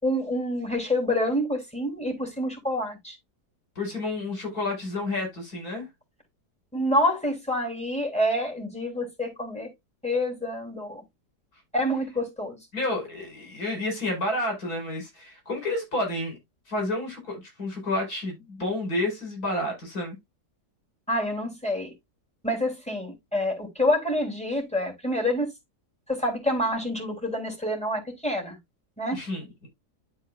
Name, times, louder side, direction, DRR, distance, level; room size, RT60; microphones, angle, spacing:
voice 1, 0.0-3.1 6.7-9.7 10.0-11.0 11.7-12.6 21.1-21.9 22.4-25.5 26.1-28.6 29.0-29.2, left 1 dB, 5° left, 3.2 m, -27 dB
voice 2, 3.8-5.9 12.7-16.4 16.7-20.2 29.1-29.7, left 2 dB, 70° left, 5.2 m, -30 dB
11.5 x 4.2 x 2.4 m
omnidirectional pair, 1.7 m